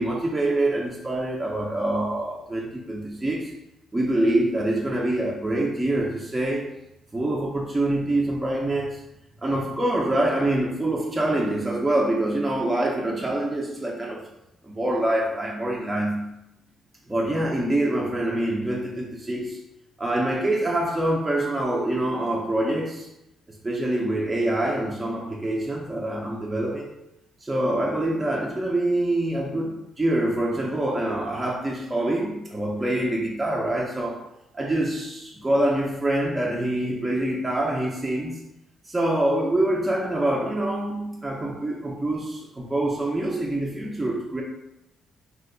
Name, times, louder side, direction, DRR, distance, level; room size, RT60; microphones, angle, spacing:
voice 1, 0.0-3.5 3.9-6.7 7.1-9.0 9.4-14.2 14.6-16.3 17.1-19.6 20.0-23.1 23.6-27.0 27.4-34.2 34.5-38.4 38.9-44.4, right 1 dB, 15° right, -3 dB, 0.5 m, -25 dB
2.7 x 2.1 x 3.7 m, 0.85 s
cardioid pair, 90°, 0 cm